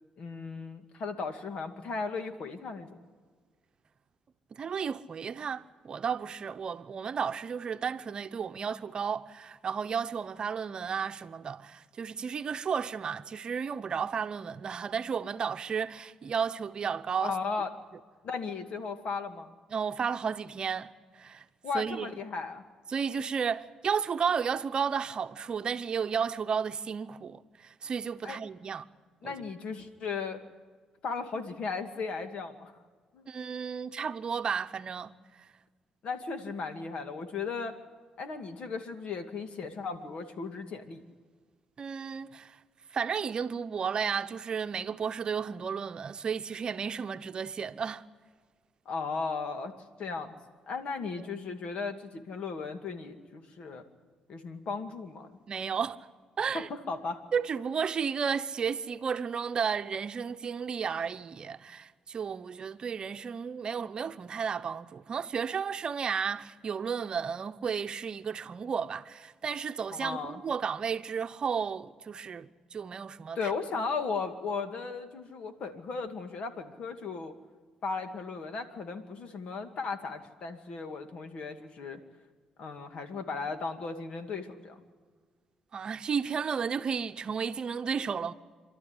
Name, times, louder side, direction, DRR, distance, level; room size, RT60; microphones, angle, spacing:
voice 1, 0.2-3.0 17.2-17.7 18.2-19.5 21.6-22.6 28.2-28.4 29.2-30.4 31.0-32.7 33.1-33.3 36.0-37.7 38.2-41.0 48.9-49.7 50.0-50.4 50.7-53.8 54.3-55.3 56.5-57.2 70.0-70.4 73.4-77.3 77.8-82.0 82.6-84.8, left 4 dB, 60° left, 2.3 m, -36 dB
voice 2, 4.5-17.4 19.7-21.4 21.7-22.1 22.9-28.9 29.2-29.4 33.3-35.1 41.8-42.6 42.9-48.0 55.5-56.0 56.4-56.7 57.3-73.5 85.7-88.3, right 6 dB, 45° right, 0.9 m, -33 dB
28.0 x 12.5 x 9.8 m
cardioid pair, 85°, 2 cm